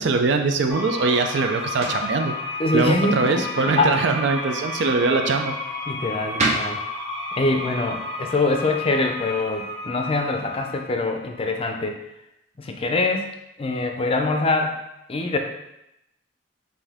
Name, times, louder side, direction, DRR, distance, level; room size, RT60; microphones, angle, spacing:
voice 1, 0.0-2.3 2.7-5.5, right 3 dB, 65° right, 5 dB, 0.4 m, -22 dB
sound 1, 0.6-9.8, right 2 dB, 40° right, 0.8 m, -35 dB
sound 2, 0.7-11.4, left 2 dB, ahead, 1.2 m, -32 dB
voice 2, 2.6-4.0 5.9-6.8 7.3-12.0 12.6-13.3 13.6-14.8 15.1-15.4, left 2 dB, 30° left, 4 dB, 0.5 m, -24 dB
5.5 x 2.6 x 3.5 m, 0.86 s
head